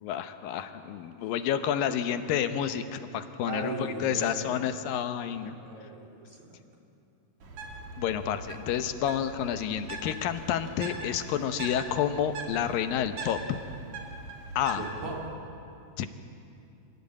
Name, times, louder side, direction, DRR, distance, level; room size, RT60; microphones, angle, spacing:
voice 1, 0.0-3.7 4.0-5.6 8.0-13.6 14.6-14.8 16.0-16.1, left 9 dB, 85° left, 9 dB, 2.7 m, -29 dB
voice 2, 3.4-4.6 5.3-6.6 14.7-15.2, right 2 dB, 85° right, -1 dB, 5.2 m, -38 dB
Bird, 7.4-15.2, right 3 dB, 55° right, 3.7 m, -41 dB
26.5 x 17.0 x 8.7 m, 2.6 s
omnidirectional pair, 4.0 m